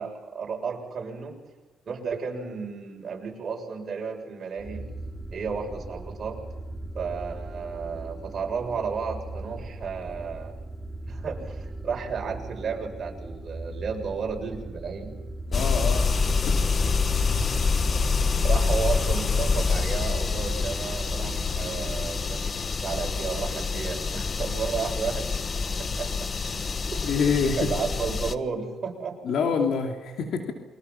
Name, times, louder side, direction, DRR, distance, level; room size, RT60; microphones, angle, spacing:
voice 1, 0.0-1.4 1.9-4.9 5.3-6.4 6.9-10.6 11.1-15.2 18.4-25.4 25.8-26.3 26.9-27.1 27.4-29.2, right 5 dB, 50° right, 0 dB, 7.5 m, -33 dB
sound 1, 4.6-22.3, right 2 dB, 15° right, 3.8 m, -39 dB
voice 2, 15.5-16.6 27.1-27.7 29.2-30.5, left 5 dB, 75° left, 3 dB, 2.7 m, -26 dB
sound 2, 15.5-28.3, left 4 dB, 40° left, 1.3 m, -26 dB
29.0 x 24.5 x 6.0 m, 1.1 s
cardioid pair, 90°, 0 cm